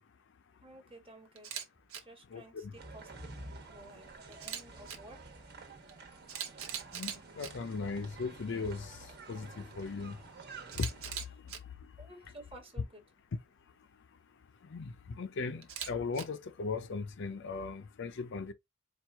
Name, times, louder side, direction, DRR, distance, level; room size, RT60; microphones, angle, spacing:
voice 1, 0.6-1.5 2.0-3.1 3.7-5.4 11.3-11.4 12.0-13.0, right 1 dB, 25° right, 1.3 m, -53 dB
Camera, 1.4-1.6 1.9-2.0 4.3-5.0 5.9-6.0 6.3-7.5 10.7-11.6 15.6-16.2, right 9 dB, 85° right, 0.9 m, -40 dB
voice 2, 2.3-2.7 6.9-9.0 9.3-10.2 10.8-10.9 14.7-18.5, left 4 dB, 60° left, 0.5 m, -38 dB
sound 1, 2.8-11.1, right 3 dB, 55° right, 1.2 m, -50 dB
4.5 x 2.4 x 3.4 m
head